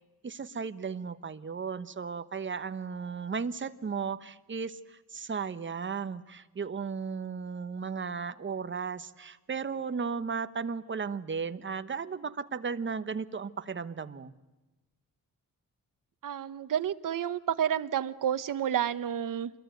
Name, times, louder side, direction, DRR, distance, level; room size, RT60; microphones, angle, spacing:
voice 1, 0.2-14.3, right 5 dB, 35° right, 12 dB, 1.1 m, -35 dB
voice 2, 16.2-19.5, right 9 dB, 70° right, 12 dB, 1.2 m, -30 dB
27.5 x 22.0 x 9.2 m, 1.1 s
wide cardioid pair, 170°, 34 cm